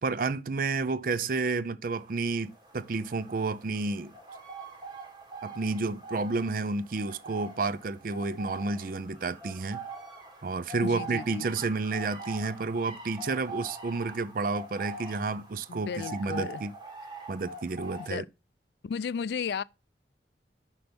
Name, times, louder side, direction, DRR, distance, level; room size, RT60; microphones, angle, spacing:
voice 1, 0.0-4.1 5.4-9.8 10.4-16.7 17.3-18.2, right 3 dB, 50° right, 0.5 m, -31 dB
sound 1, 1.9-18.1, right 3 dB, 25° right, 1.6 m, -44 dB
voice 2, 10.8-11.5 15.7-16.6 18.0-18.3 18.8-19.6, left 6 dB, 70° left, 0.3 m, -34 dB
6.1 x 5.5 x 5.1 m
head